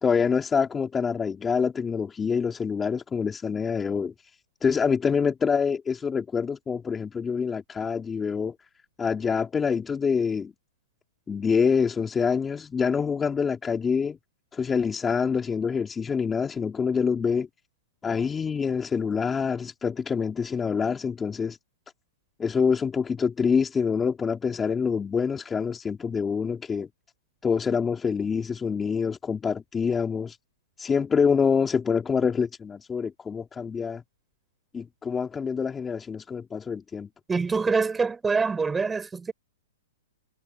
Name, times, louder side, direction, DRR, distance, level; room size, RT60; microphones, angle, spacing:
voice 1, 0.0-4.1 4.6-8.5 9.0-10.5 11.3-14.2 14.5-17.5 18.0-21.6 22.4-26.9 27.4-30.4 30.8-34.0 34.7-37.1, left 6 dB, 15° left, 2.7 m, -26 dB
voice 2, 37.3-39.3, right 4 dB, 10° right, 7.1 m, -25 dB
hypercardioid pair, 125°, 0 cm